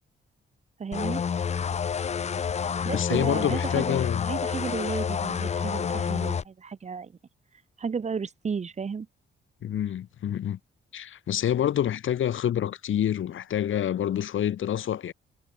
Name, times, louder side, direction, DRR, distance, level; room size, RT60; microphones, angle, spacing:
voice 1, 0.8-1.2 2.8-7.2 7.8-9.1, right 5 dB, 35° right, 1.5 m, -33 dB
sound 1, 0.9-6.4, left 7 dB, 30° left, 0.6 m, -29 dB
voice 2, 2.9-4.3 9.6-10.6 10.9-15.1, left 10 dB, 70° left, 1.6 m, -27 dB
wide cardioid pair, 165°, 21 cm